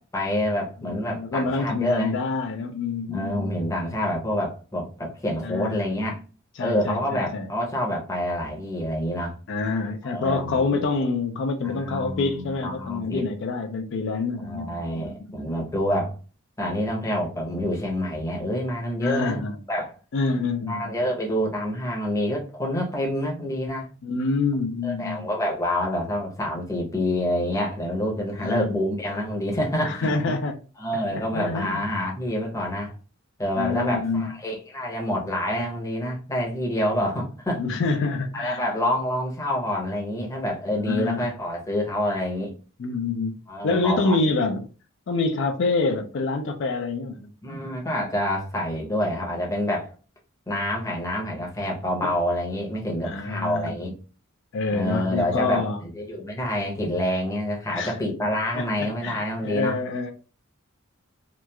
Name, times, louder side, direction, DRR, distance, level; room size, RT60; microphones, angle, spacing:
voice 1, 0.0-2.1 3.1-6.2 6.6-9.3 10.0-10.8 11.6-13.2 14.4-16.1 16.6-19.4 19.7-19.9 20.7-23.9 24.8-30.1 30.8-32.9 33.4-37.6 38.3-42.5 43.5-44.2 47.4-49.9 50.5-54.0 54.7-59.8, left 1 dB, 15° left, 0.7 m, -27 dB
voice 2, 0.8-3.5 5.4-5.9 6.6-7.5 9.5-15.3 19.0-19.6 20.1-21.0 24.0-25.3 28.4-28.7 29.8-30.6 30.9-31.7 33.6-34.3 37.6-38.6 40.9-41.3 42.8-43.4 43.6-44.7 45.1-47.3 53.0-53.8 54.5-55.8 57.7-58.0 58.5-60.1, left 3 dB, 60° left, 0.4 m, -27 dB
2.9 x 2.3 x 2.2 m
head